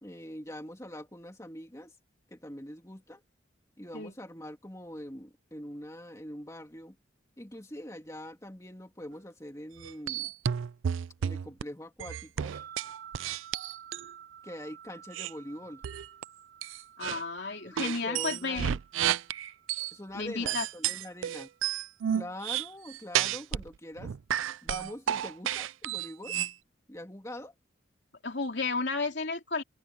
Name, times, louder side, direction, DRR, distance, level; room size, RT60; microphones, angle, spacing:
voice 1, 0.0-1.9 2.3-3.2 3.8-7.0 7.4-10.3 11.2-12.5 14.4-15.8 17.6-18.7 19.9-21.5 22.1-24.1 24.6-26.4 26.9-27.5, left 1 dB, 15° left, 2.7 m, -43 dB
sound 1, 9.8-11.6 12.0-14.1 15.1-15.3 15.8-16.3 16.6-17.2 17.8-19.9 20.5-23.7 24.0-26.5, right 10 dB, 85° right, 0.4 m, -31 dB
sound 2, 12.5-21.8, right 9 dB, 50° right, 4.6 m, -52 dB
voice 2, 17.0-18.8 20.1-20.7 28.2-29.6, left 4 dB, 60° left, 3.0 m, -32 dB
head